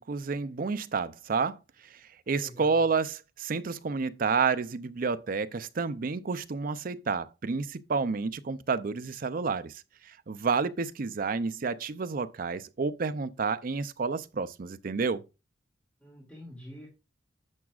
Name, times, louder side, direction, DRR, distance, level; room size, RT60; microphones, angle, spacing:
voice 1, 0.0-1.6 1.9-2.0 2.3-9.7 10.0-15.2, right 4 dB, 50° right, 0.5 m, -30 dB
voice 2, 2.3-2.9 16.0-16.9, equal, 5° left, 2.3 m, -47 dB
11.0 x 7.1 x 2.4 m
head